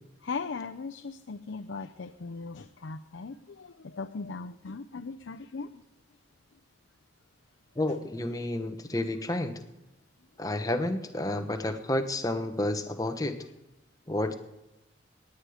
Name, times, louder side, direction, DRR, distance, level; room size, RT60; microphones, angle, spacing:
voice 1, 0.2-5.7, left 4 dB, 80° left, 5 dB, 0.6 m, -38 dB
voice 2, 7.8-9.6 10.4-13.4 14.1-14.3, left 1 dB, 20° left, 6 dB, 1.0 m, -30 dB
18.0 x 9.6 x 5.0 m, 0.96 s
head